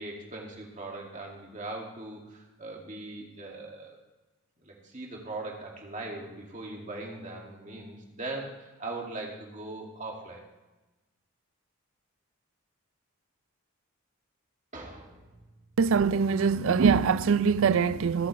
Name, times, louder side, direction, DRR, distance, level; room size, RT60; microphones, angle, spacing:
voice 1, 0.0-4.0 4.6-10.4 14.7-15.4, right 2 dB, 35° right, 2.3 m, -40 dB
voice 2, 15.8-18.3, right 6 dB, 65° right, 0.4 m, -23 dB
22.5 x 7.9 x 3.3 m
head